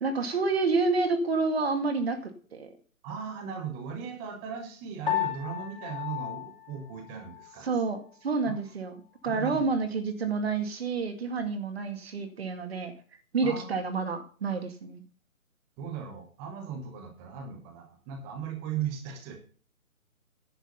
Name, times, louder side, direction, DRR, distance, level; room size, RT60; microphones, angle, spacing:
voice 1, 0.0-2.7 7.6-9.0 9.2-12.9 13.3-15.0, right 4 dB, 45° right, 7 dB, 2.1 m, -29 dB
voice 2, 3.0-7.8 8.5-8.6 9.2-9.7 13.4-13.7 15.8-19.4, right 7 dB, 5° right, 5 dB, 0.8 m, -37 dB
Piano, 5.1-7.6, left 13 dB, 35° left, 4.1 m, -34 dB
10.5 x 7.9 x 5.4 m, 0.40 s
figure-of-eight pair, 145°, 42 cm